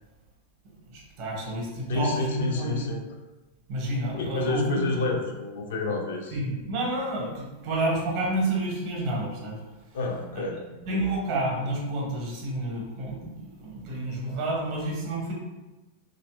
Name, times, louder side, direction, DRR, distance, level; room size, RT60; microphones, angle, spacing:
voice 1, 0.9-2.9 3.7-5.1 6.3-9.6 10.9-15.3, right 1 dB, 45° right, -2 dB, 0.7 m, -29 dB
voice 2, 1.9-3.0 4.1-6.4 9.9-11.0, left 3 dB, 60° left, 1 dB, 0.4 m, -29 dB
2.8 x 2.6 x 2.2 m, 1.1 s
figure-of-eight pair, 90°, 0 cm